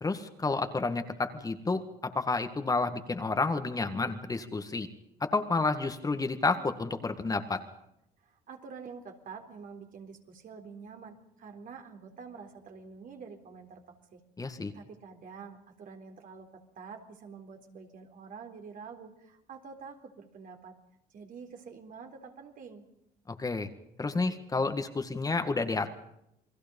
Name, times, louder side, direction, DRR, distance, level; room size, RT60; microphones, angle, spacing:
voice 1, 0.0-4.9 5.2-7.6 14.4-14.7 23.3-23.7 24.0-25.9, left 3 dB, 20° left, 7 dB, 1.8 m, -30 dB
voice 2, 8.2-14.2 14.5-20.8 21.1-22.9, right 5 dB, 55° right, 4 dB, 3.9 m, -47 dB
29.0 x 21.0 x 5.4 m, 0.79 s
cardioid pair, 110°, 17 cm